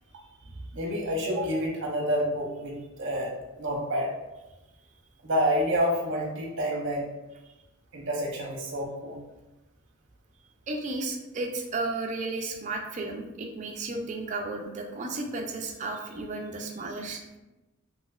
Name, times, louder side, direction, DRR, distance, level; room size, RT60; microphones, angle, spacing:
voice 1, 0.7-3.3 3.6-4.1 5.2-7.0 7.9-9.2, equal, 55° right, -1 dB, 0.7 m, -28 dB
voice 2, 10.7-17.4, right 2 dB, 35° right, 2 dB, 0.3 m, -33 dB
3.1 x 2.7 x 2.3 m, 1.0 s
head